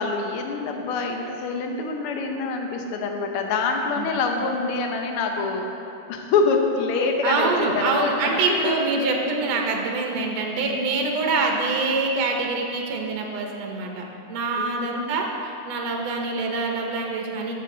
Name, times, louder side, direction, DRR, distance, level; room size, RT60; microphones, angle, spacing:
voice 1, 0.0-8.8 9.1-9.2 14.6-15.0, left 4 dB, 70° left, 3 dB, 1.4 m, -26 dB
voice 2, 7.2-17.5, right 3 dB, 70° right, 1 dB, 2.0 m, -25 dB
13.5 x 7.1 x 3.9 m, 2.8 s
omnidirectional pair, 3.4 m